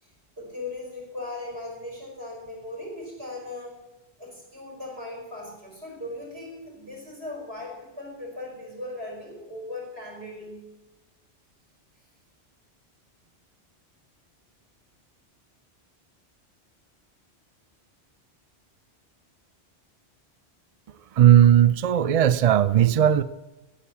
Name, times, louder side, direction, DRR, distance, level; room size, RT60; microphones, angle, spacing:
voice 1, 0.0-3.8 4.2-10.7, left 2 dB, 70° right, -1 dB, 5.2 m, -38 dB
voice 2, 21.1-23.2, right 10 dB, 50° right, 15 dB, 0.4 m, -17 dB
14.5 x 8.4 x 7.0 m, 1.1 s
omnidirectional pair, 1.1 m